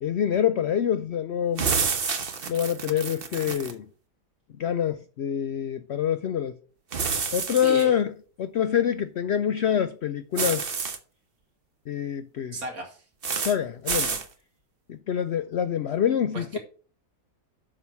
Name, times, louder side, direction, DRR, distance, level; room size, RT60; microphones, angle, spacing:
voice 1, 0.0-1.7 2.5-3.9 4.6-6.6 7.3-8.1 8.4-10.7 11.9-12.6 13.4-14.2 14.9-16.6, left 9 dB, 75° left, 0.6 m, -26 dB
sound 1, 1.6-3.7 6.9-7.8 10.4-11.0 13.2-13.6 13.9-14.3, right 5 dB, 40° right, 1.1 m, -28 dB
voice 2, 7.6-7.9 12.5-13.0 16.3-16.6, right 3 dB, 60° right, 2.7 m, -34 dB
7.5 x 6.0 x 5.9 m
omnidirectional pair, 1.7 m